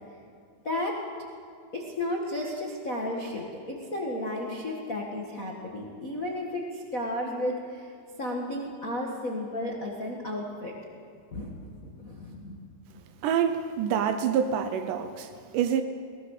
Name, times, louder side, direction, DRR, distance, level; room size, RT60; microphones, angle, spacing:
voice 1, 0.6-1.0 1.7-7.9 8.2-10.7 11.3-12.6, left 1 dB, 60° left, -1 dB, 0.8 m, -33 dB
voice 2, 13.2-15.8, right 8 dB, 85° right, 8 dB, 1.8 m, -27 dB
22.0 x 18.5 x 6.6 m, 2.4 s
omnidirectional pair, 4.8 m